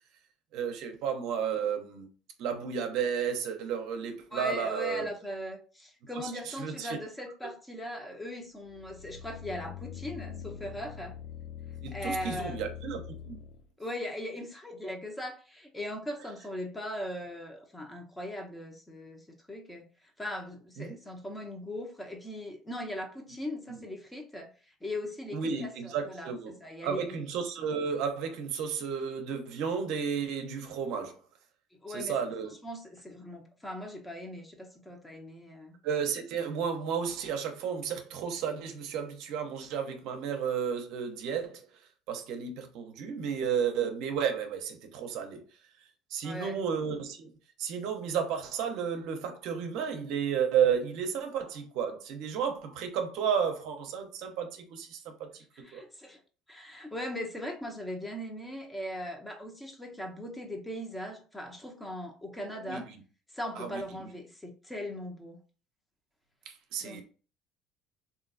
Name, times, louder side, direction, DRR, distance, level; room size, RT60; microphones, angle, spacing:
voice 1, 0.5-2.1 2.4-5.1 6.2-7.0 11.8-13.4 20.8-21.0 23.7-23.8 25.3-26.5 26.8-31.2 31.9-32.5 35.8-41.6 42.1-45.4 46.1-47.3 47.6-55.4 55.7-55.8 62.7-63.0 63.6-63.8 66.5-67.0, right 7 dB, 70° right, 0.6 m, -32 dB
voice 2, 4.3-11.2 11.9-12.6 13.8-19.9 20.2-24.5 24.8-27.2 31.8-32.2 32.5-35.8 46.2-46.6 55.5-56.2 56.5-62.9 63.3-65.4 66.8-67.0, left 1 dB, 10° left, 0.8 m, -39 dB
sound 1, 8.6-13.7, left 9 dB, 65° left, 0.4 m, -43 dB
3.0 x 2.6 x 2.5 m
supercardioid pair, 85°, 0 cm